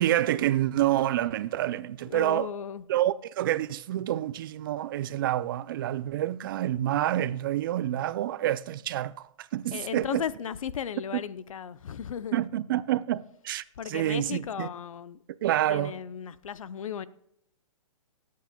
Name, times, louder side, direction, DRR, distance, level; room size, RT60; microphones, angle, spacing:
voice 1, 0.0-2.5 2.9-10.2 12.3-14.7 15.4-15.9, right 13 dB, 40° right, 0.4 m, -28 dB
voice 2, 2.1-2.8 9.7-12.4 13.8-15.2 15.7-17.1, left 8 dB, 80° left, 0.6 m, -35 dB
24.0 x 8.5 x 2.2 m
hypercardioid pair, 150°, 17 cm